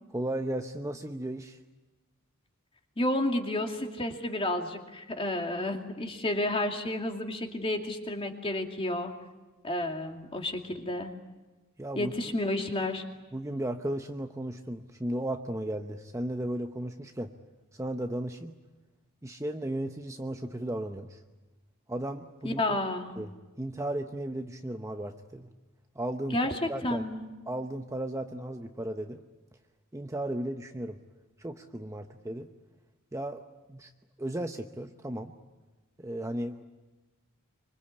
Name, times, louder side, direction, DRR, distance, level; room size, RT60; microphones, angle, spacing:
voice 1, 0.1-1.6 11.8-12.1 13.3-17.4 17.7-18.6 19.2-21.2 21.9-22.8 23.2-25.5 25.9-26.4 26.7-27.0 27.5-29.2 29.9-31.0 31.4-32.5 33.1-33.4 33.7-33.9 34.2-35.4 36.0-36.6, right 1 dB, 15° right, 5 dB, 0.8 m, -35 dB
voice 2, 3.0-9.1 9.6-11.1 12.0-13.0 22.4-23.1 26.3-27.3, left 1 dB, 25° left, 3 dB, 2.5 m, -31 dB
25.0 x 24.5 x 8.5 m, 1.2 s
head